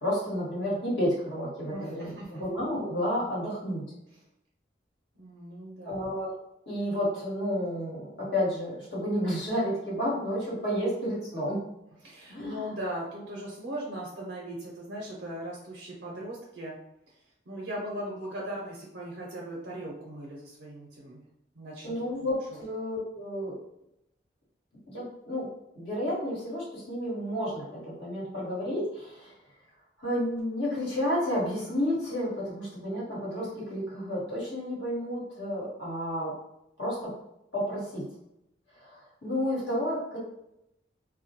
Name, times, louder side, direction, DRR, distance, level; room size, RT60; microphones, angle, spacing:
voice 1, 0.0-3.9 5.8-6.3 6.7-11.6 12.3-12.7 21.8-23.6 24.9-29.3 30.0-36.4 36.8-37.1 37.5-38.1 38.8-40.2, equal, 75° left, -7 dB, 1.3 m, -31 dB
voice 2, 1.6-2.4 5.2-6.0 12.0-16.8 17.1-17.2 17.5-21.2 21.5-22.1 22.5-22.6, right 1 dB, 80° right, -4 dB, 0.6 m, -39 dB
2.2 x 2.1 x 2.8 m, 0.82 s
head